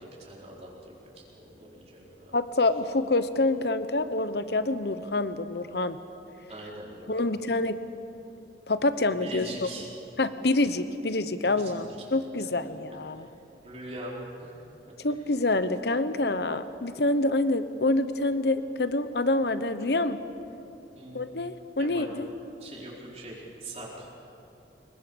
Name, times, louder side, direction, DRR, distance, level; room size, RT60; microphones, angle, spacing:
voice 1, 0.0-2.3 6.5-7.3 9.1-9.9 11.4-11.7 12.4-12.5 13.1-13.3 13.6-14.6 20.9-21.5 21.8-22.1 22.6-24.1, right 1 dB, 35° right, -4 dB, 4.3 m, -42 dB
voice 2, 2.3-6.0 7.1-7.8 8.7-9.7 10.2-13.3 15.0-20.2 21.1-22.3, left 2 dB, 60° left, 12 dB, 1.0 m, -27 dB
26.0 x 22.5 x 7.0 m, 2.9 s
head